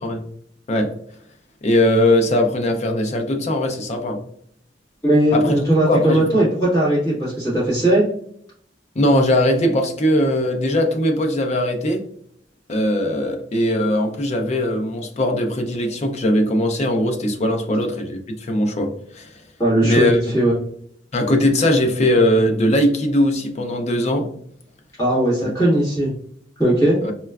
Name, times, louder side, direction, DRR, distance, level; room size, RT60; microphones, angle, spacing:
voice 1, 1.6-4.2 5.3-6.4 9.0-12.0 12.7-19.4 19.8-20.2 21.1-24.3 25.4-25.5 27.0-27.1, left 1 dB, 40° left, 4 dB, 0.5 m, -20 dB
voice 2, 5.0-8.0 19.6-20.5 25.0-26.1 26.6-27.0, right 1 dB, 20° left, -9 dB, 1.4 m, -18 dB
4.2 x 2.2 x 2.3 m, 0.66 s
head